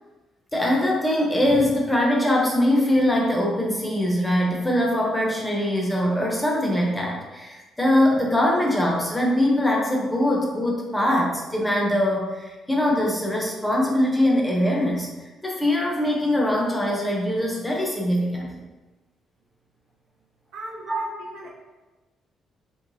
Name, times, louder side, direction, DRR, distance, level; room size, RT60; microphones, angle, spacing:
voice 1, 0.5-18.6 20.9-21.0, left 1 dB, 5° left, -2 dB, 0.7 m, -22 dB
voice 2, 20.5-21.5, right 2 dB, 80° right, -3 dB, 0.9 m, -37 dB
4.9 x 3.2 x 2.7 m, 1.2 s
cardioid pair, 150°, 0 cm